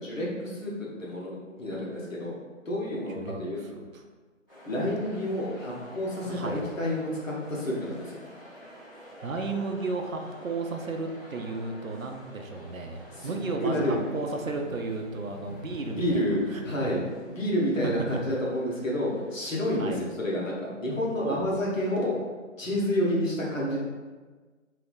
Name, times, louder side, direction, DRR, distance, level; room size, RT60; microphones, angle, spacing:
voice 1, 0.0-2.4 2.6-3.6 4.7-8.2 13.1-13.3 13.6-14.0 16.0-17.0 17.3-22.1 22.6-23.8, left 1 dB, 75° left, -5 dB, 1.2 m, -29 dB
voice 2, 3.1-4.0 6.3-6.6 9.2-16.2 16.5-16.9 17.8-17.9 18.3-18.4 19.8-20.0 21.2-21.5, right 3 dB, 85° right, 4 dB, 0.6 m, -34 dB
sound 1, 4.5-20.0, equal, 15° left, 1.3 m, -47 dB
3.2 x 2.8 x 2.5 m, 1.4 s
figure-of-eight pair, 160°, 40 cm